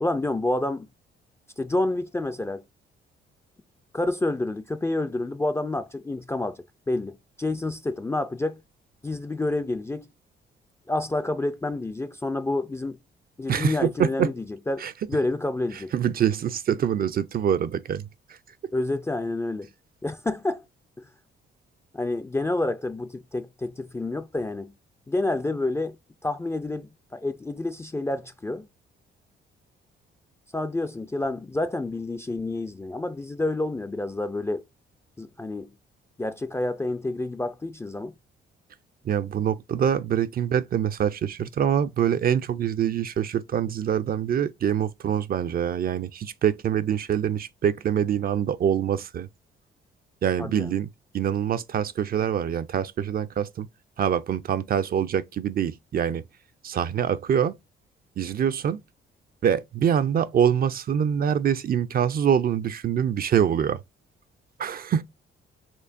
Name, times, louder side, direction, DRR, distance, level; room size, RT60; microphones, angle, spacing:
voice 1, 0.0-0.9 1.6-2.6 3.9-8.6 9.0-10.1 10.9-13.0 13.4-15.9 18.7-19.7 20.0-20.6 21.0-21.1 21.9-24.7 25.1-26.0 26.2-28.7 30.5-34.6 35.2-35.7 36.2-38.1 50.4-50.7, left 2 dB, 15° left, 0.4 m, -28 dB
voice 2, 13.5-14.3 14.8-14.9 15.7-18.1 39.1-49.3 50.2-53.7 54.0-56.2 56.6-57.5 58.2-58.8 59.4-63.8 64.6-65.0, right 9 dB, 50° right, 0.5 m, -25 dB
4.4 x 2.8 x 2.5 m
cardioid pair, 90°, 20 cm